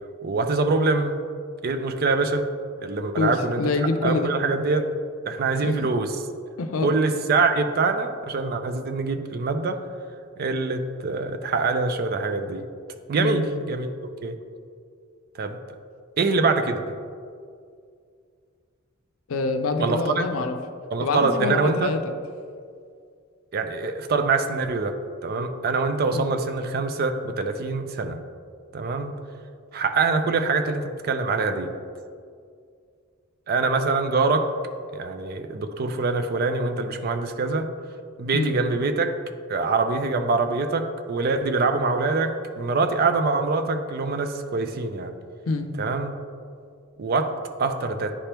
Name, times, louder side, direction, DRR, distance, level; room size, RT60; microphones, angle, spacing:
voice 1, 0.2-1.1 1.6-2.4 2.8-3.6 4.0-4.9 5.3-6.2 6.8-9.8 10.4-12.7 13.1-13.9 14.2-14.4 15.3-15.6 16.2-16.8 19.8-20.2 20.9-21.9 23.5-24.9 25.2-28.2 28.7-29.1 29.7-31.7 33.5-34.5 34.9-37.7 38.2-39.1 39.5-45.1 45.8-46.1 47.0-47.3 47.6-48.1, right 3 dB, 45° right, 7 dB, 0.4 m, -24 dB
voice 2, 3.2-4.3 5.6-5.9 6.6-6.9 13.2-13.4 19.3-20.6 21.0-22.0 26.1-26.3 38.3-38.6 45.5-45.7, left 3 dB, 80° left, 7 dB, 0.5 m, -26 dB
9.8 x 3.3 x 2.9 m, 2.2 s
head